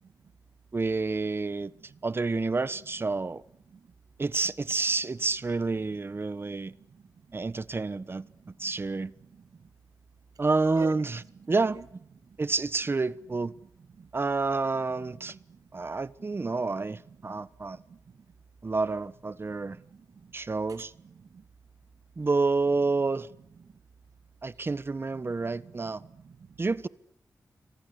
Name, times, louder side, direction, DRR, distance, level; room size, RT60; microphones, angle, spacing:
voice 1, 0.7-1.7 2.0-3.4 4.2-6.7 7.3-9.1 10.4-11.8 12.4-13.5 14.1-15.4 15.7-17.8 18.6-19.8 20.3-20.9 22.2-23.3 24.4-26.0 26.6-26.9, right 3 dB, 40° right, 1.2 m, -29 dB
voice 2, 15.2-15.6 17.4-17.5 17.9-18.2 19.7-20.3 21.3-21.4 25.4-26.5, right 6 dB, 75° right, 1.7 m, -48 dB
29.5 x 24.5 x 8.3 m
cardioid pair, 65°, 6 cm